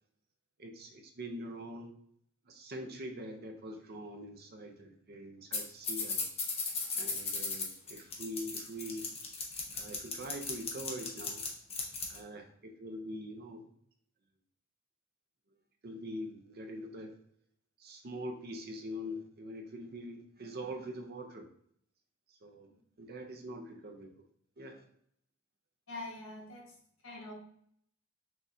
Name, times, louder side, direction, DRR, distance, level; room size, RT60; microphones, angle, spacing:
voice 1, 0.6-1.9 2.4-6.3 7.0-9.1 9.7-11.4 12.1-13.7 15.8-17.2 17.8-21.5 22.3-24.2 24.6-24.9, equal, 50° right, 5 dB, 0.6 m, -44 dB
sound 1, 5.5-5.6 5.8-12.2, left 4 dB, 30° left, 0.8 m, -36 dB
voice 2, 25.9-26.8 27.0-27.4, left 2 dB, 85° left, -1 dB, 1.3 m, -44 dB
6.2 x 2.4 x 2.6 m, 0.67 s
head